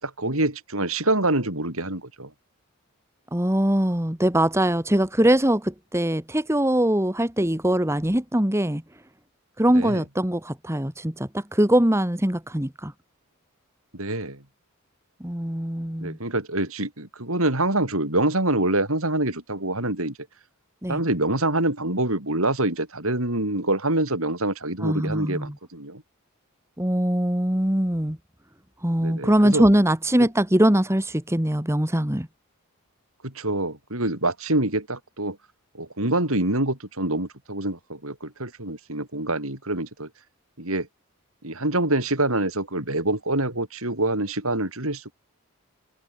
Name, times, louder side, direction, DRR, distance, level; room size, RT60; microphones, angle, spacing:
voice 1, 0.0-2.3 9.7-10.0 13.9-14.4 16.0-20.2 20.9-26.0 29.0-29.7 30.2-30.3 33.2-35.4 35.7-40.1 40.6-40.9 41.4-45.1, right 2 dB, 70° right, 6.3 m, -26 dB
voice 2, 3.3-8.8 9.6-12.9 15.2-16.2 20.8-21.0 24.8-25.5 26.8-28.2 28.8-32.3, right 1 dB, 10° right, 1.8 m, -22 dB
head